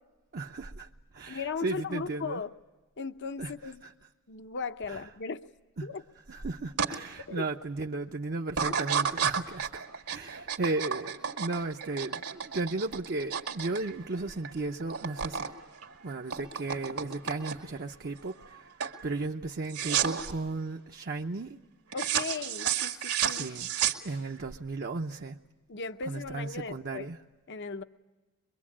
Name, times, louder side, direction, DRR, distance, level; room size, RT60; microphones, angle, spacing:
voice 1, 0.3-2.4 3.4-3.9 4.9-5.1 5.8-5.9 6.3-15.5 16.0-18.7 19.0-21.6 23.2-23.7 24.0-25.4 26.0-27.2, right 3 dB, 45° right, 0.7 m, -35 dB
voice 2, 1.3-2.5 3.0-3.8 4.3-5.4 5.8-6.0 7.3-7.5 21.9-23.5 25.7-27.1 27.5-27.8, left 5 dB, 55° left, 0.8 m, -37 dB
sound 1, 6.8-6.9 7.4-7.8 8.5-14.5 14.8-15.5 15.8-17.8 18.3-18.5 18.8-19.0 19.7-20.3 21.9-24.4, right 8 dB, 75° right, 1.9 m, -31 dB
24.0 x 23.5 x 8.6 m
head